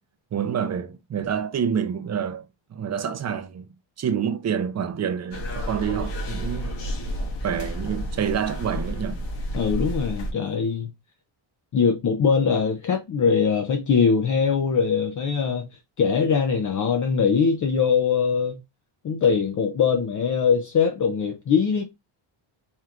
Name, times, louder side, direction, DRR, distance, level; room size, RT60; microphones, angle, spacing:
voice 1, 0.3-2.4 2.7-3.7 4.0-6.8 7.4-9.2, right 8 dB, 35° right, 0.5 m, -27 dB
sound 1, 5.3-10.3, equal, 60° left, 1.5 m, -31 dB
voice 2, 9.5-10.9 11.7-15.7 16.0-18.6 19.0-21.8, left 6 dB, 40° left, 0.6 m, -22 dB
4.5 x 2.4 x 3.6 m
cardioid pair, 145°, 49 cm